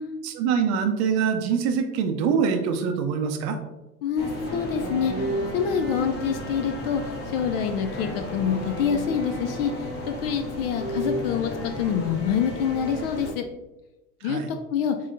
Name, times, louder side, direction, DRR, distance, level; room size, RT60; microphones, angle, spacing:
voice 1, 0.2-3.6 14.2-14.5, right 6 dB, 35° right, 5 dB, 0.6 m, -24 dB
voice 2, 4.0-5.3 5.5-7.0 7.3-13.5 14.2-14.4 14.7-15.0, left 7 dB, 40° left, 6 dB, 0.4 m, -26 dB
sound 1, 4.2-13.3, equal, 20° left, 1.3 m, -32 dB
4.8 x 3.8 x 2.6 m, 1.0 s
figure-of-eight pair, 80°, 48 cm